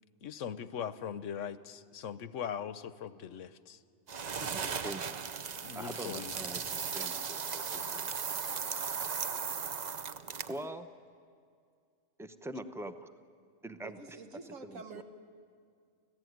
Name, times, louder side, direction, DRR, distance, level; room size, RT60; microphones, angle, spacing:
voice 1, 0.2-3.8 5.6-6.3, left 8 dB, 70° left, 14 dB, 1.1 m, -40 dB
sound 1, 4.1-10.7, right 6 dB, 45° right, 0.6 m, -37 dB
voice 2, 4.4-5.0 5.7-8.1 10.5-10.9 12.2-13.1 13.6-14.2 14.4-15.0, right 1 dB, 5° right, 10 dB, 0.5 m, -44 dB
voice 3, 13.8-15.0, right 3 dB, 70° right, 7 dB, 1.8 m, -47 dB
25.0 x 16.5 x 9.3 m, 2.2 s
omnidirectional pair, 1.4 m